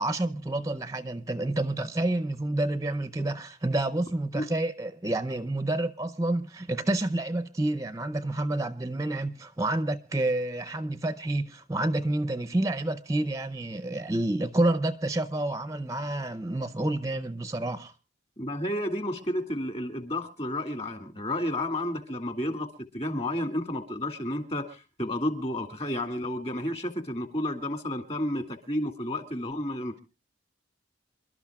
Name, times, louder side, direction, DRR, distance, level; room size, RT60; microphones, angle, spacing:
voice 1, 0.0-17.9, right 1 dB, 20° right, 0.6 m, -29 dB
voice 2, 18.4-30.0, left 1 dB, 35° left, 2.2 m, -31 dB
27.5 x 12.5 x 2.3 m
head